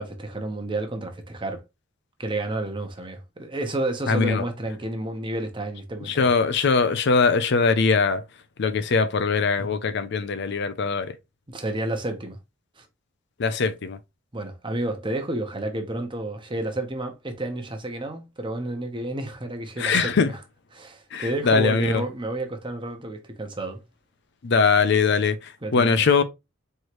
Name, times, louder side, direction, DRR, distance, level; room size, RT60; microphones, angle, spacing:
voice 1, 0.0-1.6 2.2-6.3 11.5-12.4 12.8-12.9 14.3-20.4 20.7-23.8 25.6-26.0, right 1 dB, 25° right, 0.9 m, -31 dB
voice 2, 4.1-4.4 6.1-8.2 8.6-11.1 13.4-14.0 19.8-20.3 21.1-22.0 24.4-25.4 25.7-26.2, left 4 dB, 55° left, 0.5 m, -21 dB
4.5 x 3.1 x 3.0 m
head